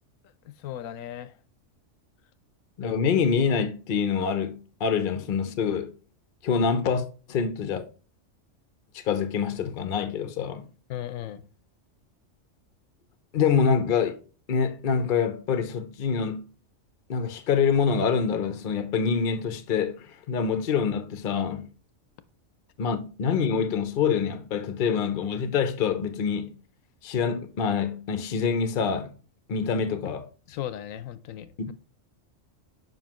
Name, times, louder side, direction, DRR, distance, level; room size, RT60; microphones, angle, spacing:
voice 1, 0.5-1.3 10.9-11.4 30.5-31.7, left 11 dB, 80° left, 1.0 m, -36 dB
voice 2, 2.8-5.9 6.4-7.8 8.9-10.7 13.3-14.2 14.5-16.5 17.1-21.7 22.8-26.6 27.0-29.1 29.5-30.3, left 6 dB, 50° left, 0.7 m, -26 dB
7.4 x 5.3 x 3.0 m
omnidirectional pair, 1.4 m